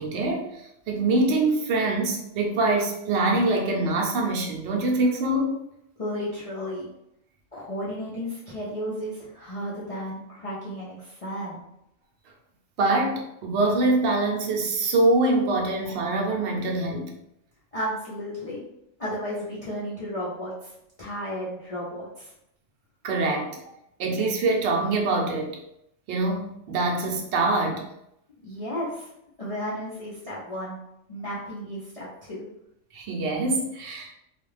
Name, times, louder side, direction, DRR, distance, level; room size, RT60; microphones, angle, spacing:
voice 1, 0.0-5.6 12.8-17.1 23.0-23.6 24.0-25.6 26.1-27.9 32.9-34.1, right 2 dB, 65° right, 1 dB, 0.8 m, -24 dB
voice 2, 6.0-6.9 7.5-11.7 17.7-18.7 19.0-20.7 21.0-22.3 28.4-29.1 29.4-30.8 31.1-32.5, equal, 40° left, -7 dB, 0.5 m, -33 dB
2.4 x 2.3 x 3.1 m, 0.80 s
omnidirectional pair, 1.4 m